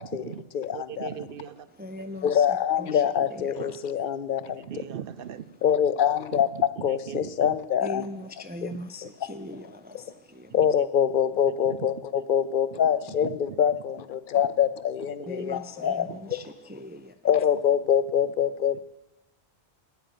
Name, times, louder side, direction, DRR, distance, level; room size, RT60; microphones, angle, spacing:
voice 1, 0.0-0.4 0.7-1.7 3.1-3.3 3.6-4.0 4.4-5.5 6.3-7.6 7.9-8.0 8.2-8.3 11.6-12.1 12.7-13.8 15.2-15.4 15.8-16.2 18.7-18.8, right 8 dB, 60° right, 0.7 m, -40 dB
voice 2, 0.5-1.1 2.2-4.7 5.6-8.1 8.6-8.7 9.0-9.1 10.5-16.4 17.2-18.8, left 9 dB, 60° left, 0.6 m, -25 dB
voice 3, 1.8-3.8 7.8-10.6 15.3-17.2, left 1 dB, 15° right, 0.3 m, -40 dB
9.3 x 9.1 x 9.0 m
omnidirectional pair, 1.1 m